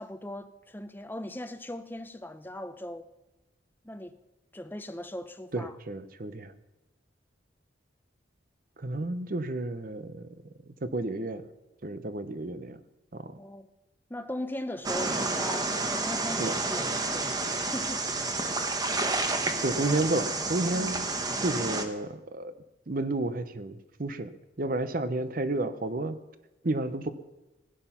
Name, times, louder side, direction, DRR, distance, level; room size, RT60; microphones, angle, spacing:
voice 1, 0.0-3.1 3.8-4.2 4.5-5.7 13.4-13.7 14.1-18.1 20.7-20.9, left 1 dB, 10° left, 0.6 m, -39 dB
voice 2, 5.5-6.5 8.8-10.3 10.8-11.5 11.8-12.8 13.1-13.4 16.3-16.5 19.6-21.0 21.4-22.5 22.9-24.3 24.6-26.2 26.6-27.1, right 2 dB, 50° right, 0.7 m, -31 dB
sound 1, 14.8-21.8, right 3 dB, 20° right, 0.9 m, -30 dB
16.5 x 10.0 x 5.8 m
head